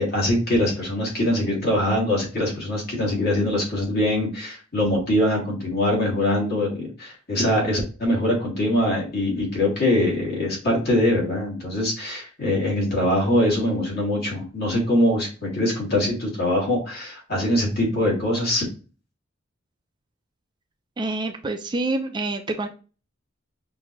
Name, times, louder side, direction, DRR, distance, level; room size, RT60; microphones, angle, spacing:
voice 1, 0.0-18.6, left 1 dB, 50° left, -3 dB, 2.3 m, -23 dB
voice 2, 21.0-22.7, right 2 dB, 20° right, 5 dB, 0.4 m, -27 dB
5.7 x 2.7 x 3.0 m, 0.35 s
head